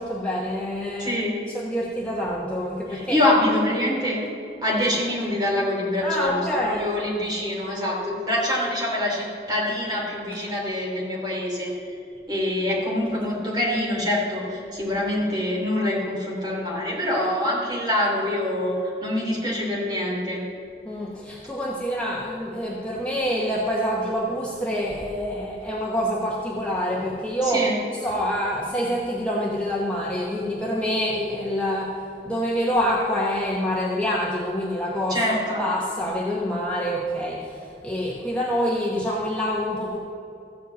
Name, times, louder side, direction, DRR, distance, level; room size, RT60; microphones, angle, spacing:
voice 1, 0.0-3.2 6.0-6.8 20.8-27.7 28.0-31.9 32.2-35.2 35.6-40.0, equal, 5° left, -4 dB, 0.9 m, -26 dB
voice 2, 1.0-1.4 2.9-4.2 4.6-6.4 6.7-11.7 12.3-20.4 27.4-27.8 35.1-35.6, left 1 dB, 25° right, -4 dB, 3.1 m, -25 dB
14.5 x 5.3 x 8.0 m, 2.6 s
head